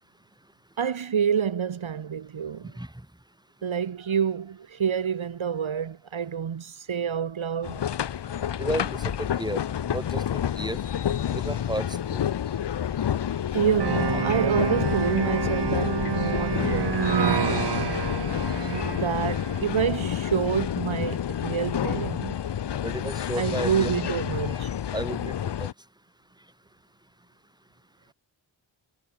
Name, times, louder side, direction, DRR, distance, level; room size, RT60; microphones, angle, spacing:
voice 1, 0.8-2.7 3.6-7.8 13.5-18.1 18.7-22.4 23.3-24.7, right 7 dB, 70° right, 1.7 m, -28 dB
sound 1, 7.6-25.7, left 9 dB, 55° left, 0.8 m, -29 dB
voice 2, 8.6-9.6 9.9-10.8 11.3-12.2 22.8-23.9 24.9-25.7, right 1 dB, 10° right, 3.4 m, -32 dB
sound 2, 13.8-19.7, right 7 dB, 50° right, 1.2 m, -28 dB
cardioid pair, 50°, 50 cm